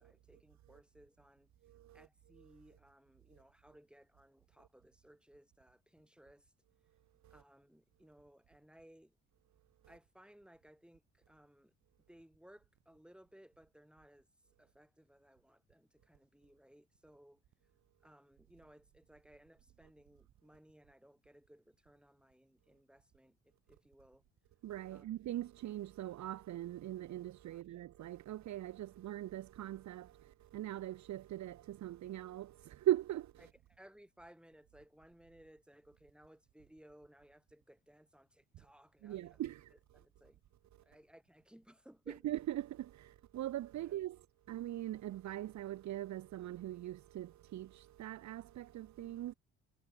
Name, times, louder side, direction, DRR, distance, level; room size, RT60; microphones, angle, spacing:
voice 1, 0.0-1.5 1.9-6.5 7.3-9.2 9.9-11.7 12.1-14.3 14.6-17.4 18.0-24.2 24.9-25.1 27.5-27.6 33.4-39.4 39.7-40.4 40.8-42.2 43.8-44.0, equal, 5° right, 7.3 m, -62 dB
voice 2, 1.6-2.1 7.2-7.3 24.6-33.3 39.0-39.7 42.2-49.3, right 13 dB, 65° right, 0.9 m, -41 dB
cardioid pair, 90°, 30 cm